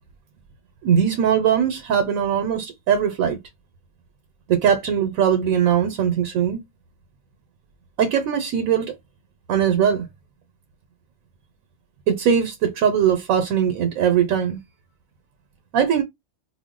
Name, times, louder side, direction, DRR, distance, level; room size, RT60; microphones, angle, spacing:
voice 1, 0.8-3.4 4.5-6.6 8.0-8.9 9.5-10.1 12.1-14.6 15.7-16.0, right 8 dB, 90° right, 1.0 m, -20 dB
2.6 x 2.0 x 3.6 m
omnidirectional pair, 1.4 m